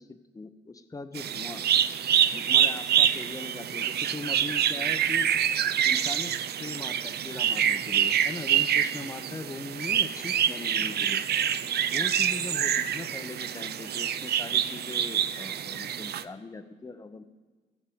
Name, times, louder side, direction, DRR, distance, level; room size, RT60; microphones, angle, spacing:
voice 1, 0.0-1.6 2.3-5.3 5.8-11.2 11.9-17.2, left 3 dB, 15° left, 10 dB, 0.7 m, -40 dB
sound 1, 1.1-16.2, right 9 dB, 55° right, 0.5 m, -26 dB
16.5 x 6.5 x 5.0 m, 1.4 s
cardioid pair, 90°, 20 cm